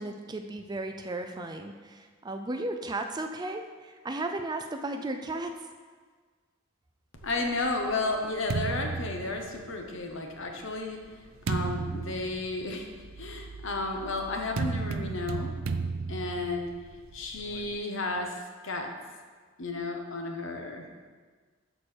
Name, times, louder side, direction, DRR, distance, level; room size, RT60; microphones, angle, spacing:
voice 1, 0.0-5.7, right 2 dB, 20° right, 5 dB, 0.4 m, -35 dB
voice 2, 7.2-11.0 11.5-12.9 13.2-15.5 16.1-16.7 17.1-18.3 18.6-18.9 19.6-20.9, left 2 dB, 65° left, 3 dB, 1.1 m, -32 dB
sound 1, 7.2-10.0 10.7-17.8, right 4 dB, 75° right, 0.5 m, -35 dB
12.5 x 4.5 x 4.5 m, 1.5 s
head